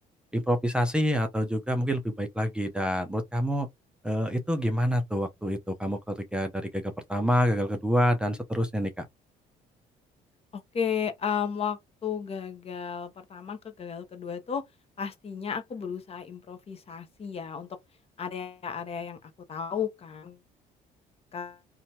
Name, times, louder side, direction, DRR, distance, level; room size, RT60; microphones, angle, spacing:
voice 1, 0.3-3.7 4.0-9.1, equal, 5° right, 0.5 m, -27 dB
voice 2, 10.5-14.6 15.0-17.7 18.2-20.4 21.3-21.6, left 7 dB, 35° left, 0.7 m, -34 dB
2.8 x 2.2 x 2.7 m
cardioid pair, 110°, 17 cm